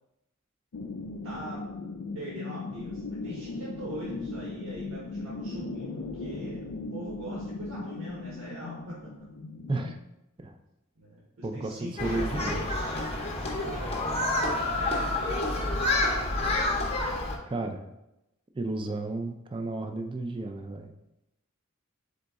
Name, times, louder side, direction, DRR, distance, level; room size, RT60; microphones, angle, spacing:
sound 1, 0.7-9.9, left 3 dB, 85° left, 0.5 m, -38 dB
voice 1, 1.2-1.6 2.1-9.1 10.9-15.8, right 1 dB, 80° right, -6 dB, 1.1 m, -43 dB
voice 2, 11.4-12.6 16.9-17.1 17.5-17.9 18.5-20.9, right 2 dB, 25° right, 5 dB, 0.4 m, -33 dB
Human group actions, 12.0-17.4, left 2 dB, 30° left, 0.7 m, -28 dB
4.0 x 3.8 x 3.5 m, 0.89 s
head